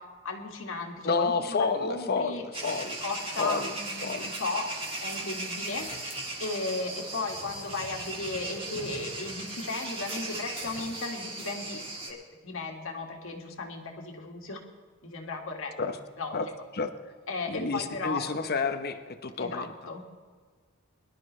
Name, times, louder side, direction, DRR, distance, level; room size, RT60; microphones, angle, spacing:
voice 1, 0.0-2.5 3.0-6.1 6.4-12.2 12.4-14.6 15.0-15.7 16.2-16.4 17.3-18.2 19.4-20.0, left 3 dB, 70° left, 2 dB, 2.1 m, -35 dB
voice 2, 1.0-3.0 3.4-4.3 5.9-6.2 15.8-16.0 16.3-16.5 16.7-16.9 17.5-19.7, left 4 dB, 50° left, 9 dB, 1.0 m, -30 dB
sound 1, 2.5-12.1, right 2 dB, 25° right, 2.6 m, -37 dB
23.0 x 12.0 x 3.3 m, 1.5 s
head